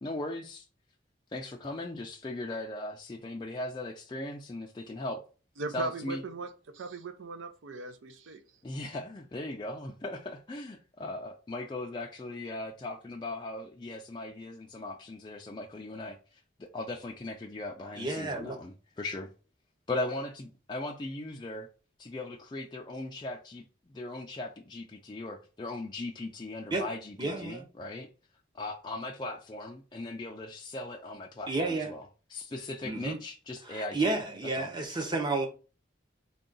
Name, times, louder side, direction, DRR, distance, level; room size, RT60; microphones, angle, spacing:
voice 1, 0.0-0.7 1.3-5.2 5.7-6.2 8.6-19.3 19.9-21.7 22.0-28.1 28.5-32.0 32.3-34.0 34.6-34.7, left 2 dB, 25° left, 0.3 m, -38 dB
voice 2, 5.6-8.4, right 2 dB, 80° right, 0.5 m, -38 dB
voice 3, 18.0-18.6 26.7-26.9 27.2-27.7 31.5-31.9 32.8-33.2 33.6-35.5, right 3 dB, 20° right, 0.7 m, -31 dB
3.7 x 2.3 x 3.8 m
head